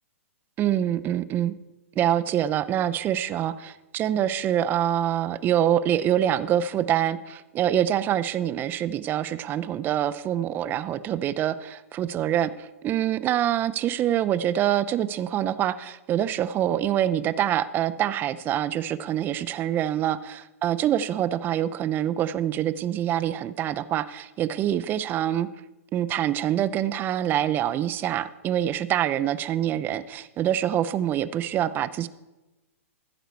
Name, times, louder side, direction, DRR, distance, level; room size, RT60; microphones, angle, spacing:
voice 1, 0.6-1.5 2.0-25.5 25.9-32.1, right 11 dB, 25° right, 16 dB, 0.5 m, -25 dB
15.0 x 8.1 x 4.6 m, 1.1 s
hypercardioid pair, 125°, 8 cm